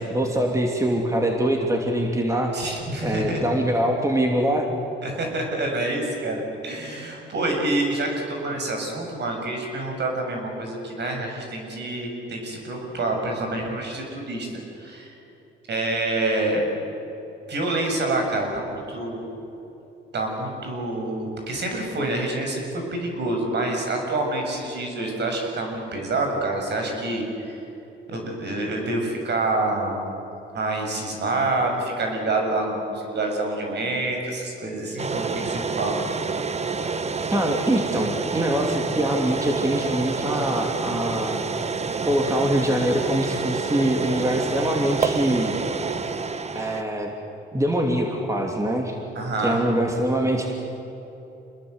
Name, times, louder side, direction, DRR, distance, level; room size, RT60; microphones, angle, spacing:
voice 1, 0.0-2.6 3.0-4.7 37.3-41.4 42.1-45.6 46.5-47.1 47.5-49.0 49.4-50.5, right 1 dB, 15° right, 1 dB, 2.8 m, -23 dB
voice 2, 2.5-3.4 5.0-15.1 15.7-16.6 17.5-19.3 20.1-27.5 28.1-30.0 30.5-36.0 49.2-49.6, right 2 dB, 60° right, 2 dB, 6.9 m, -27 dB
sound 1, 35.0-46.8, right 4 dB, 35° right, 1.2 m, -28 dB
27.0 x 21.0 x 8.1 m, 3.0 s
cardioid pair, 90°, 20 cm